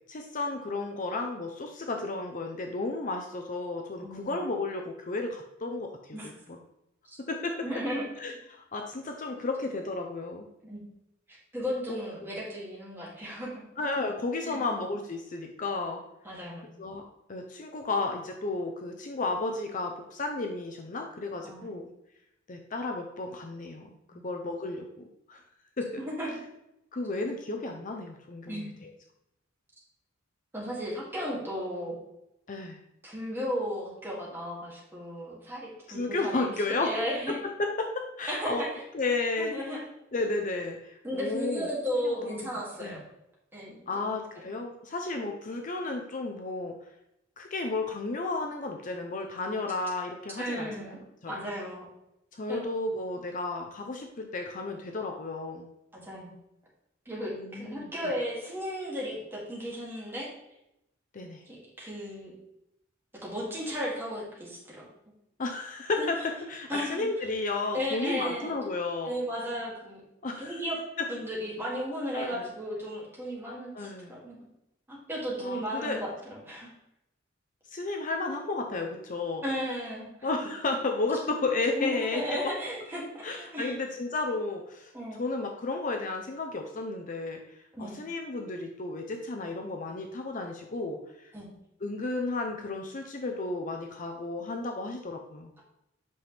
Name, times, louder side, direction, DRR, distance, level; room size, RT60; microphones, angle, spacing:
voice 1, 0.1-6.6 7.2-7.6 8.2-10.5 11.9-12.3 13.8-16.0 16.3-16.4 16.8-17.0 17.3-21.9 22.5-23.9 24.2-24.8 25.3-25.4 25.8-26.0 26.9-28.9 32.5-32.8 35.9-36.9 37.3-38.6 38.9-39.5 40.1-41.7 42.0-42.5 42.8-43.0 43.9-46.7 47.4-51.0 51.2-51.4 52.3-55.7 57.3-58.1 61.1-61.4 65.4-69.1 70.2-70.5 72.1-72.5 73.7-74.2 75.4-76.0 77.7-79.4 80.2-82.5 83.2-84.9 85.2-87.4 87.8-91.3 91.8-95.5, left 3 dB, 40° left, 3 dB, 0.6 m, -33 dB
voice 2, 4.0-4.5 6.1-6.3 7.6-8.1 10.6-10.8 11.5-13.5 14.4-14.6 16.2-16.7 21.4-21.8 24.1-24.3 26.0-26.3 28.5-28.7 30.5-32.0 33.0-36.5 36.8-37.4 38.3-38.8 39.4-39.8 41.0-43.0 43.5-44.1 50.4-51.0 51.3-51.8 52.5-52.6 55.9-56.3 57.1-60.3 61.5-62.3 63.2-64.9 66.0-66.1 66.7-67.0 67.7-68.5 69.0-70.0 70.4-70.8 71.1-74.4 74.9-76.7 79.4-80.3 81.7-83.7 84.9-85.2 87.7-88.0 91.3-91.5, equal, 10° right, -6 dB, 2.5 m, -35 dB
8.5 x 5.8 x 3.4 m, 0.84 s
head